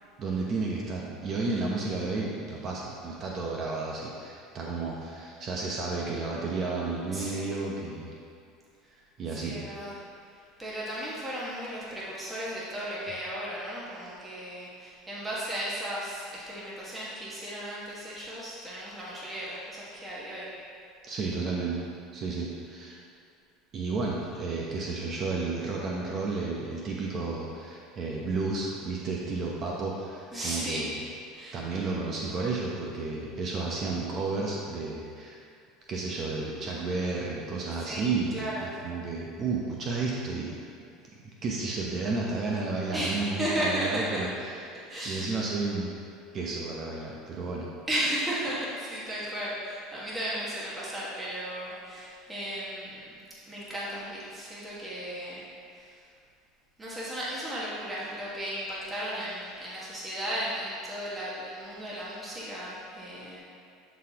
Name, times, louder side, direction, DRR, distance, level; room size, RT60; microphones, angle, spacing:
voice 1, 0.2-8.1 9.2-9.6 21.1-21.8 22.1-23.0 23.7-30.9 31.5-35.4 35.9-40.6 41.2-44.8 45.0-45.9 46.3-47.7, right 3 dB, 45° right, -3 dB, 0.8 m, -32 dB
voice 2, 7.1-7.5 9.3-10.0 10.6-20.5 30.3-30.9 31.3-31.6 37.8-38.7 42.9-44.2 44.9-45.3 47.9-53.1 53.5-55.4 55.7-55.9 56.8-63.4, equal, 15° right, -8 dB, 1.5 m, -35 dB
11.0 x 4.2 x 2.9 m, 2.4 s
supercardioid pair, 100°, 0 cm